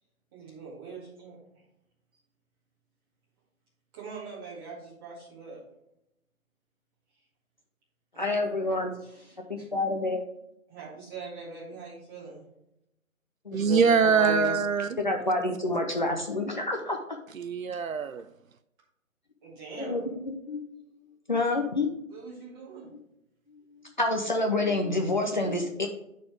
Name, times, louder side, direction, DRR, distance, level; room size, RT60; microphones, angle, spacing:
voice 1, 0.3-1.4 3.9-5.6 8.1-8.5 9.0-9.7 10.7-12.4 19.4-20.1 22.1-22.9, right 4 dB, 15° right, 2.0 m, -43 dB
voice 2, 8.2-8.9 9.5-10.2 13.5-14.6 15.0-17.2 19.8-20.6 21.3-21.9 23.8-25.9, left 2 dB, 35° left, 0.6 m, -28 dB
voice 3, 13.5-15.0 17.3-18.3, right 6 dB, 70° right, 0.6 m, -24 dB
10.5 x 4.2 x 3.4 m
figure-of-eight pair, 155°, 42 cm